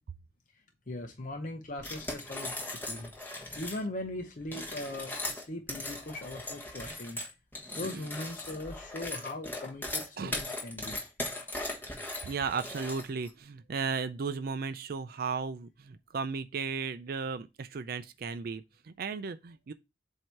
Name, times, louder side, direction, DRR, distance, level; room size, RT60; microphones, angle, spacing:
voice 1, 0.5-3.1 3.6-7.2 7.7-11.0, left 1 dB, 50° left, 0.7 m, -40 dB
sound 1, 1.8-3.8 4.4-13.3, left 1 dB, 10° left, 1.3 m, -38 dB
voice 2, 12.2-19.7, right 5 dB, 55° right, 0.4 m, -35 dB
7.6 x 2.8 x 4.5 m
head